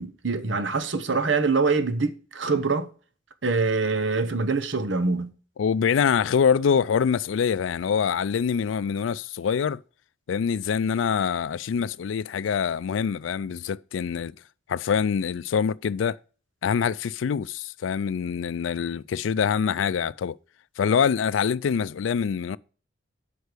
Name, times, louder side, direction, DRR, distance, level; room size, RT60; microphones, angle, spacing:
voice 1, 0.0-2.9 3.4-5.3, right 4 dB, 75° right, 1.0 m, -24 dB
voice 2, 5.6-9.8 10.3-14.3 14.7-16.2 16.6-20.4 20.8-22.6, left 7 dB, 85° left, 0.4 m, -25 dB
8.1 x 5.5 x 6.6 m
head